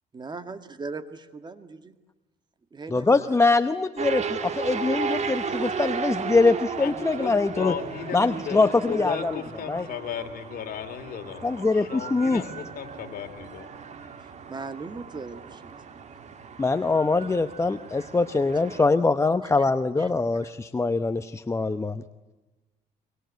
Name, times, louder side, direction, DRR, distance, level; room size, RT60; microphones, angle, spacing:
voice 1, 0.1-2.0 2.7-3.6 14.5-16.0 18.0-18.1 20.0-20.1, right 4 dB, 25° right, 10 dB, 1.9 m, -39 dB
voice 2, 2.9-7.7 8.1-9.4 9.7-9.9 11.4-12.4 16.6-22.0, left 3 dB, 15° left, 9 dB, 0.9 m, -23 dB
sound 1, 4.0-18.9, right 6 dB, 45° right, 2.2 m, -35 dB
voice 3, 7.2-8.6 8.8-13.7, left 8 dB, 60° left, 6 dB, 3.1 m, -35 dB
24.5 x 24.0 x 9.4 m, 1.1 s
cardioid pair, 110°, 17 cm